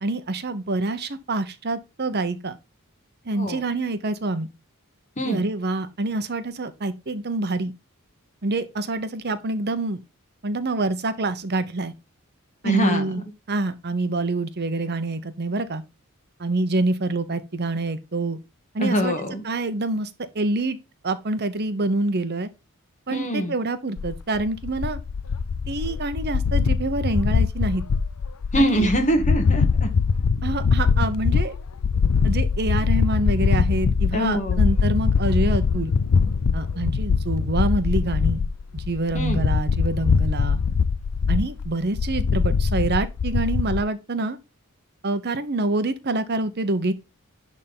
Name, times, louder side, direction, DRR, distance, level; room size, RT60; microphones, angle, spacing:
voice 1, 0.0-2.6 3.2-4.5 5.2-7.7 8.4-10.0 10.4-11.9 12.6-13.2 13.5-15.8 16.4-18.4 18.7-19.1 19.4-20.1 20.3-20.8 21.0-22.5 23.1-25.0 25.7-27.8 28.6-28.9 30.4-31.6 32.2-35.9 36.5-38.4 38.7-40.6 41.3-44.4 45.0-46.9, right 2 dB, 50° right, 0.9 m, -26 dB
voice 2, 12.6-13.1 18.8-19.4 23.1-23.5 28.5-29.9 34.1-34.6 39.1-39.4, right 1 dB, 35° left, 1.9 m, -23 dB
sound 1, 24.0-43.8, left 5 dB, 90° left, 0.5 m, -22 dB
11.0 x 3.7 x 5.5 m
head